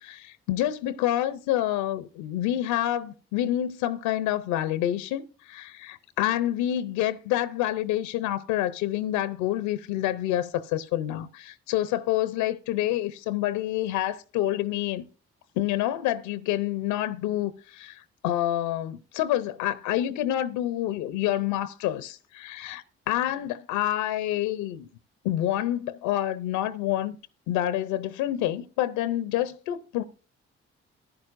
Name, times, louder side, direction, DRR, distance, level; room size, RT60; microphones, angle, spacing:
voice 1, 0.0-15.0 15.6-24.9 25.2-27.2 27.5-30.0, left 13 dB, 90° left, 0.5 m, -28 dB
14.0 x 10.5 x 2.5 m
hypercardioid pair, 45°, 30 cm